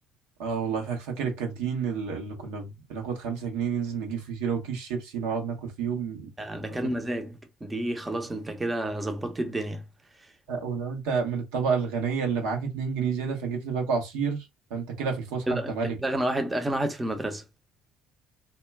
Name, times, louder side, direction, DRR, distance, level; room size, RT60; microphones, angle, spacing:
voice 1, 0.4-6.3 6.8-6.9 10.5-14.4 14.7-15.9, right 6 dB, 80° right, 0.8 m, -30 dB
voice 2, 6.4-9.8 15.5-15.7 16.0-17.4, right 1 dB, 20° right, 0.6 m, -30 dB
2.2 x 2.2 x 3.2 m
hypercardioid pair, 60°, 0 cm